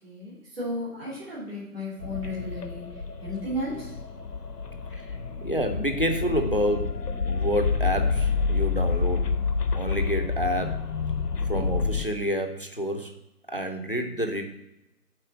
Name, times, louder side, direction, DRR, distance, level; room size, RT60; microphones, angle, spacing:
voice 1, 0.0-3.9, left 1 dB, 40° right, -9 dB, 2.9 m, -34 dB
sound 1, 2.0-12.1, left 4 dB, 85° left, 0.8 m, -28 dB
voice 2, 4.9-9.4 9.7-10.8 11.4-13.1 13.5-14.4, equal, 35° left, 5 dB, 0.6 m, -29 dB
7.7 x 4.3 x 4.8 m, 0.91 s
figure-of-eight pair, 165°, 47 cm